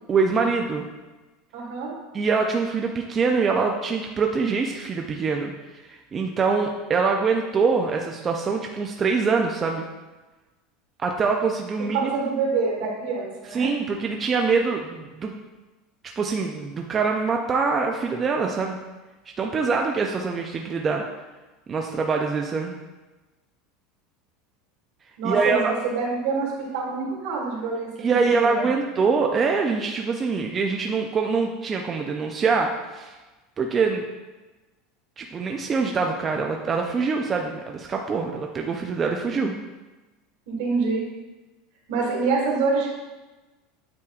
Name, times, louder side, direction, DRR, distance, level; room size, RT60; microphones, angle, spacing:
voice 1, 0.1-0.8 2.1-9.8 11.0-12.1 13.5-15.3 16.2-18.8 19.4-21.0 21.7-22.7 25.2-25.7 28.0-33.2 33.6-34.0 35.2-39.5, right 4 dB, 20° right, 2 dB, 0.3 m, -24 dB
voice 2, 1.5-1.9 11.9-13.7 25.2-28.7 40.5-41.0 41.9-42.9, right 4 dB, 70° right, -3 dB, 2.0 m, -26 dB
8.4 x 4.8 x 2.4 m, 1.2 s
supercardioid pair, 170°, 0 cm